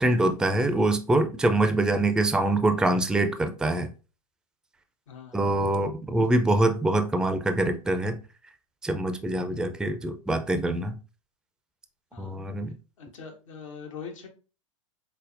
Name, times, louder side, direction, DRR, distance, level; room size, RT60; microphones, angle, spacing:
voice 1, 0.0-3.9 5.3-8.2 8.8-10.9 12.2-12.7, right 2 dB, 5° right, 0.4 m, -24 dB
voice 2, 5.1-5.5 12.1-12.4 13.0-14.3, left 6 dB, 70° left, 1.0 m, -42 dB
5.2 x 2.1 x 2.6 m
hypercardioid pair, 90°, 17 cm